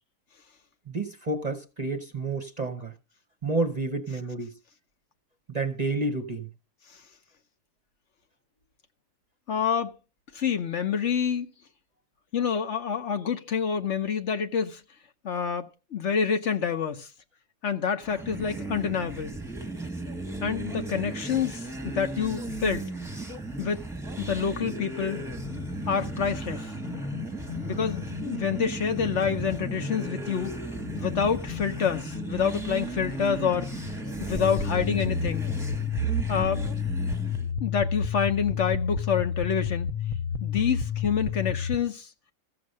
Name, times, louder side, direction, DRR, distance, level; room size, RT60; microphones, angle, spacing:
voice 1, 0.9-2.9 3.4-4.5 5.5-6.5, right 3 dB, 35° right, 0.8 m, -30 dB
voice 2, 9.5-9.9 10.3-11.5 12.3-14.8 15.2-17.1 17.6-19.4 20.4-22.9 23.6-23.8 24.2-25.2 25.9-26.7 27.6-30.5 30.9-33.7 34.2-35.5 36.3-36.6 37.6-39.9 40.4-42.1, left 7 dB, 55° left, 1.1 m, -27 dB
sound 1, 18.0-37.5, right 2 dB, ahead, 1.2 m, -36 dB
sound 2, 24.6-35.0, left 9 dB, 80° left, 1.8 m, -41 dB
sound 3, 34.4-41.8, left 5 dB, 30° left, 0.7 m, -29 dB
14.5 x 6.9 x 6.4 m
omnidirectional pair, 1.5 m